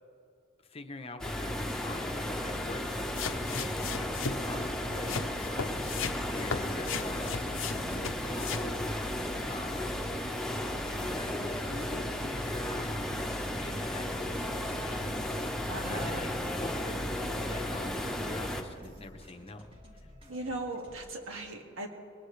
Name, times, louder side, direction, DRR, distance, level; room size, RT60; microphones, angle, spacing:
voice 1, 0.6-9.1 9.5-10.1 10.9-15.3 15.9-19.6, left 2 dB, 30° left, 7 dB, 0.9 m, -44 dB
sound 1, 1.2-18.6, left 1 dB, 5° left, 1.1 m, -34 dB
sound 2, 2.9-21.1, equal, 25° right, 2.2 m, -54 dB
sound 3, 3.2-8.7 9.4-9.5, left 6 dB, 65° left, 0.7 m, -36 dB
voice 2, 15.7-16.2 20.3-21.9, right 2 dB, 70° right, 2 dB, 2.0 m, -38 dB
22.0 x 19.5 x 3.3 m, 2.4 s
head